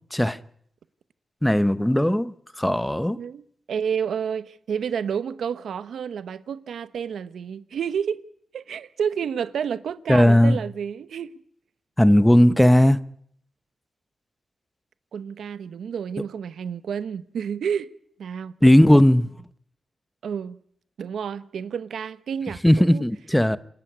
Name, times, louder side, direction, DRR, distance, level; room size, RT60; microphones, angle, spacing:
voice 1, 1.4-3.2 10.1-10.6 12.0-13.0 18.6-19.3 22.6-23.6, left 1 dB, 5° left, 0.9 m, -17 dB
voice 2, 3.1-8.2 8.5-11.3 15.1-17.9 18.2-18.5 20.2-20.6 21.0-23.1 23.5-23.6, right 7 dB, 90° right, 1.0 m, -30 dB
27.5 x 12.0 x 9.5 m
wide cardioid pair, 95°, 0 cm